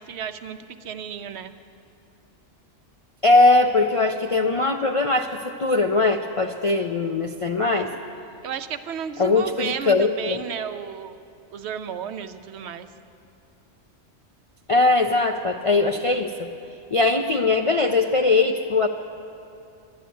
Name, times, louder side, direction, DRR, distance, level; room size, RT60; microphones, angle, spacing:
voice 1, 0.0-1.5 8.4-11.2 11.5-12.9, right 7 dB, 70° right, 9 dB, 0.9 m, -33 dB
voice 2, 3.2-7.9 9.2-10.4 14.7-16.5 16.9-18.9, left 3 dB, 50° left, 3 dB, 0.4 m, -20 dB
11.5 x 11.0 x 8.5 m, 2.6 s
omnidirectional pair, 1.2 m